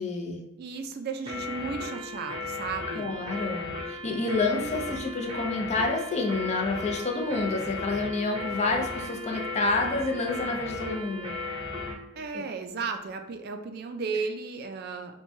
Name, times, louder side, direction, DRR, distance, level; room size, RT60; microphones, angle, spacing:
voice 1, 0.0-0.4 2.9-11.3 12.3-12.4, left 3 dB, 35° left, 2 dB, 0.5 m, -29 dB
voice 2, 0.6-3.1 12.2-15.2, right 5 dB, 50° right, 6 dB, 0.3 m, -34 dB
sound 1, 1.3-12.0, left 3 dB, 25° right, 0.7 m, -36 dB
4.4 x 2.2 x 2.6 m, 0.92 s
head